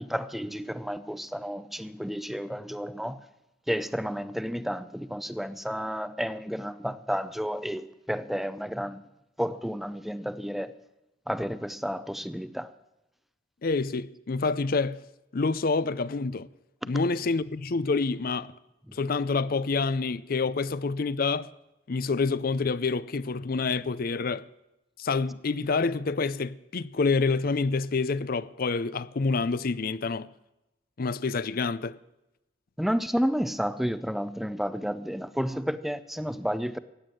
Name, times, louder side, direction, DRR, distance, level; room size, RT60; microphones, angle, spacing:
voice 1, 0.0-3.2 3.7-9.0 9.4-10.7 11.3-12.7 18.9-19.0 32.8-36.8, equal, ahead, 0.5 m, -31 dB
voice 2, 13.6-15.0 15.3-16.5 16.9-18.5 18.9-21.5 21.9-24.4 25.0-30.3 31.0-32.0, left 4 dB, 50° left, 0.5 m, -27 dB
15.0 x 9.4 x 9.0 m
head